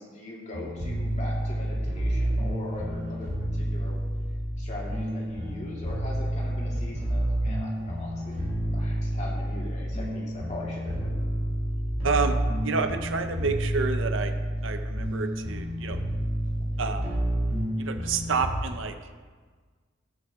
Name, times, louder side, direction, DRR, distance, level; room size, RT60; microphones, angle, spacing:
voice 1, 0.0-3.3 3.6-4.0 4.6-8.4 8.7-11.2 17.0-17.2, left 1 dB, 35° left, -4 dB, 2.5 m, -41 dB
sound 1, 0.5-18.5, equal, 50° right, 2.8 m, -29 dB
voice 2, 12.0-12.3 12.6-14.3 14.6-16.0 16.8-17.0 17.8-18.9, right 4 dB, 80° right, 8 dB, 0.7 m, -29 dB
14.0 x 8.8 x 3.7 m, 1.5 s
head